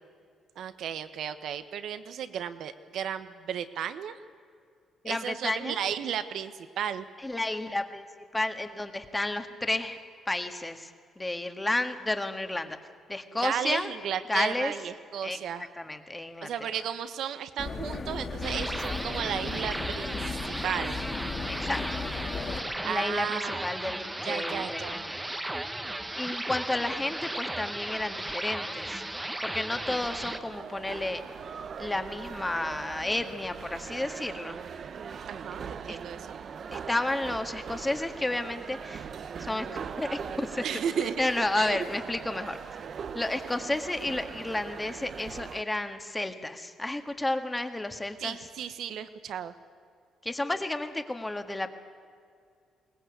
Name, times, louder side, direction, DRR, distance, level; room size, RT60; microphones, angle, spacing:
voice 1, 0.6-4.2 5.0-7.0 13.4-15.7 16.4-21.0 22.8-23.9 24.2-25.0 35.3-36.4 40.6-41.3 41.6-41.9 48.2-49.5, right 8 dB, 75° right, 12 dB, 1.2 m, -34 dB
voice 2, 5.0-5.8 7.2-8.0 8.3-10.0 10.2-10.9 11.2-12.8 13.1-13.9 14.3-14.7 15.2-16.7 21.5-22.0 22.8-25.2 26.1-29.0 29.4-31.2 31.8-34.6 35.9-36.0 36.7-39.1 39.4-40.6 41.2-42.6 43.1-48.4 50.2-51.7, left 2 dB, 15° left, 7 dB, 1.7 m, -31 dB
sound 1, 17.6-22.6, left 4 dB, 40° left, 3.2 m, -35 dB
sound 2, 18.4-30.4, right 1 dB, 10° right, 1.2 m, -35 dB
sound 3, 29.7-45.6, right 6 dB, 55° right, 0.8 m, -41 dB
22.0 x 18.5 x 8.3 m, 2.2 s
cardioid pair, 90°, 0 cm